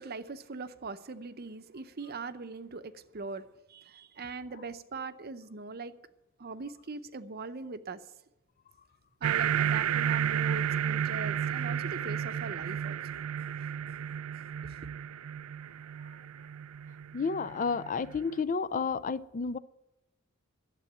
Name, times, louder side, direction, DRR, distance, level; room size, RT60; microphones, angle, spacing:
voice 1, 0.0-6.0 6.4-8.1 9.2-13.0 14.6-14.7, right 4 dB, 45° right, 0.7 m, -41 dB
sound 1, 9.2-18.2, right 9 dB, 85° right, 0.4 m, -32 dB
voice 2, 17.1-19.6, left 5 dB, 35° left, 0.4 m, -31 dB
12.0 x 7.7 x 9.9 m
head